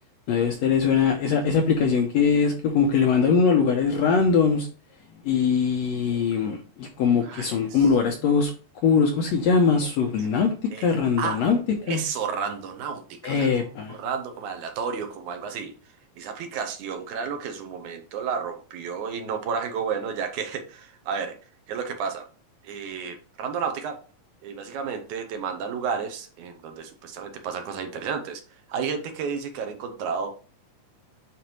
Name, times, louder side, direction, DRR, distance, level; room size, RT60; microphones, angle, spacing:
voice 1, 0.3-4.7 5.2-8.5 8.8-11.6 11.9-12.0 13.2-14.0, left 6 dB, 75° left, 3 dB, 1.6 m, -22 dB
voice 2, 7.0-7.9 10.2-10.3 10.7-10.9 11.2-11.4 11.8-15.7 16.2-21.4 21.7-22.2 22.6-24.0 24.4-28.4 28.7-30.3, right 6 dB, 70° right, 6 dB, 2.2 m, -32 dB
9.3 x 3.9 x 3.1 m, 0.38 s
omnidirectional pair, 3.8 m